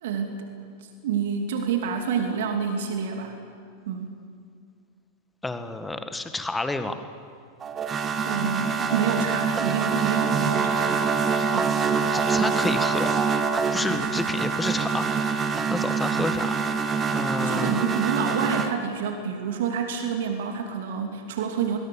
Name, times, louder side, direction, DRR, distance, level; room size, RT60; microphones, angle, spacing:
voice 1, 0.0-0.5 0.8-3.4 3.9-4.2 8.2-11.2 11.5-11.8 17.4-21.8, right 6 dB, 55° right, 4 dB, 2.8 m, -28 dB
voice 2, 5.4-7.0 12.1-15.1 15.7-16.6 17.1-17.8, left 2 dB, 10° left, 9 dB, 1.6 m, -30 dB
sound 1, 7.6-18.7, right 5 dB, 25° right, 1.4 m, -25 dB
26.5 x 21.5 x 7.0 m, 2.2 s
figure-of-eight pair, 90°, 0 cm